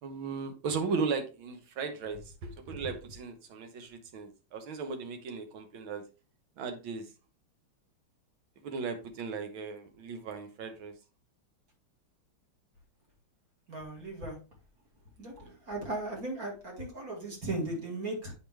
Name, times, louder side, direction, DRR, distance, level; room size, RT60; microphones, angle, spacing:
voice 1, 0.0-6.0 6.6-7.1 8.6-10.9 15.4-15.5, right 5 dB, 75° right, 1.8 m, -36 dB
voice 2, 13.7-14.4 15.2-18.3, right 2 dB, 45° right, 2.5 m, -37 dB
8.2 x 4.7 x 3.3 m
omnidirectional pair, 2.3 m